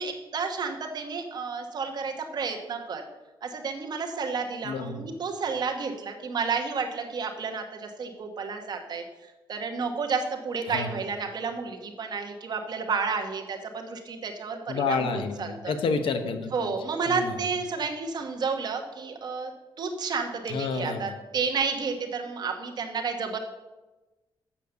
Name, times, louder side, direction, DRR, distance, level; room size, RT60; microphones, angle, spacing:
voice 1, 0.0-3.0 3.4-9.0 9.5-15.7 16.5-19.5 19.8-23.4, right 5 dB, 50° right, 3 dB, 1.1 m, -31 dB
voice 2, 4.6-5.1 10.7-10.9 14.7-16.7 17.1-17.3 20.5-21.1, left 4 dB, 75° left, 8 dB, 1.0 m, -29 dB
7.4 x 6.7 x 6.8 m, 1.1 s
wide cardioid pair, 150°, 9 cm